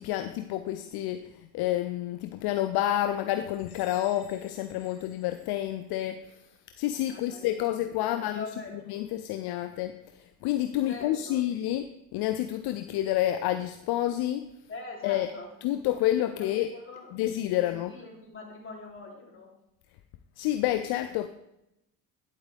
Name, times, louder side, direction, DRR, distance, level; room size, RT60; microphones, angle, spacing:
voice 1, 0.0-6.2 6.8-8.4 8.9-14.5 15.0-15.3 15.6-16.7 17.1-17.9 20.4-21.3, left 13 dB, 65° left, 10 dB, 0.6 m, -29 dB
sound 1, 3.5-6.1, left 5 dB, 90° left, 1.9 m, -56 dB
voice 2, 7.0-8.9 10.8-11.4 14.7-15.5 16.1-17.2 17.6-19.5, left 3 dB, 30° left, 0 dB, 3.1 m, -44 dB
11.0 x 7.9 x 3.4 m, 0.87 s
supercardioid pair, 75°, 41 cm